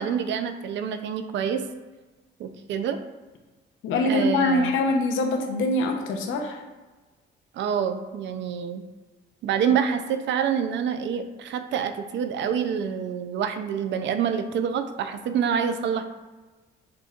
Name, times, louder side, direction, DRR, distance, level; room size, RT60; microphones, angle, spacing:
voice 1, 0.0-1.6 2.4-3.0 4.0-4.7 7.5-8.8 9.4-16.0, right 7 dB, 65° right, 8 dB, 0.4 m, -27 dB
voice 2, 3.8-6.6, left 2 dB, 80° left, 3 dB, 0.7 m, -24 dB
7.4 x 2.9 x 2.4 m, 1.2 s
cardioid pair, 90°, 20 cm